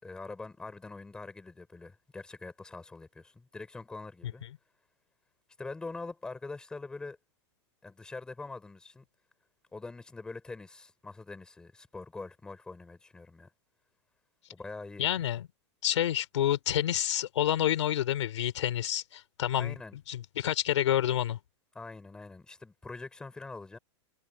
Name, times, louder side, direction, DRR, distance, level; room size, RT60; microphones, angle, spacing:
voice 1, 0.0-4.4 5.6-7.2 7.8-9.0 9.7-13.5 14.5-15.1 19.6-20.0 21.8-23.8, left 3 dB, 5° left, 5.0 m, -44 dB
voice 2, 15.0-15.5 15.8-19.8 20.1-21.4, left 11 dB, 75° left, 3.9 m, -28 dB
supercardioid pair, 180°, 15 cm